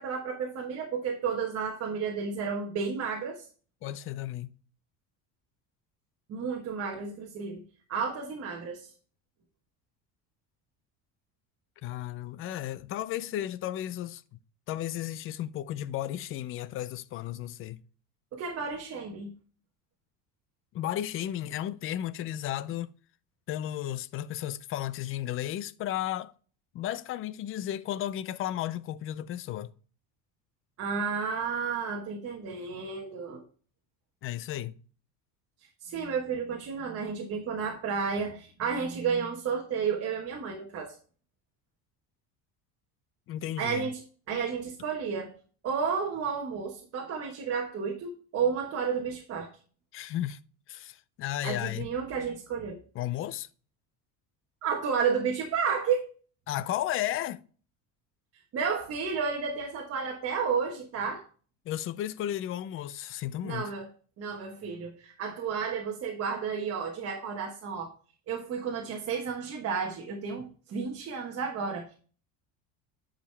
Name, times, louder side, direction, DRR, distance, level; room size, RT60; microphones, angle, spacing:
voice 1, 0.0-3.5 6.3-7.6 7.9-8.9 18.3-19.3 30.8-33.4 35.8-40.9 43.6-44.0 44.3-45.3 45.6-49.5 51.4-52.8 54.6-56.1 58.3-61.2 63.4-63.9 64.2-67.9 68.3-71.9, right 6 dB, 40° right, 1.2 m, -32 dB
voice 2, 3.8-4.5 11.8-14.2 14.7-17.8 20.7-22.9 23.5-26.3 26.7-29.7 34.2-34.8 43.3-43.9 49.9-50.4 50.7-51.9 52.9-53.5 56.5-57.4 61.7-63.7, left 12 dB, 35° left, 0.4 m, -34 dB
10.0 x 5.0 x 3.3 m
cardioid pair, 150°, 37 cm